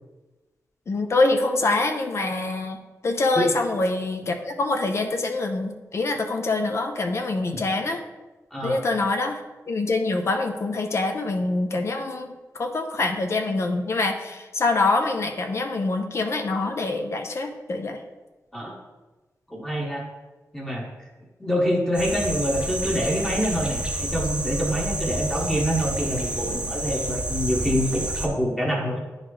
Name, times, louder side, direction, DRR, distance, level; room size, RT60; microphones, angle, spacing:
voice 1, 0.9-2.8 3.0-8.0 8.6-9.4 9.7-18.0, left 3 dB, 50° left, 5 dB, 0.5 m, -25 dB
voice 2, 19.5-20.0 20.5-20.9 21.4-29.0, equal, 10° left, -2 dB, 1.0 m, -26 dB
sound 1, 21.9-28.3, right 1 dB, 15° right, 0.7 m, -29 dB
10.0 x 4.0 x 3.2 m, 1.2 s
wide cardioid pair, 155°, 6 cm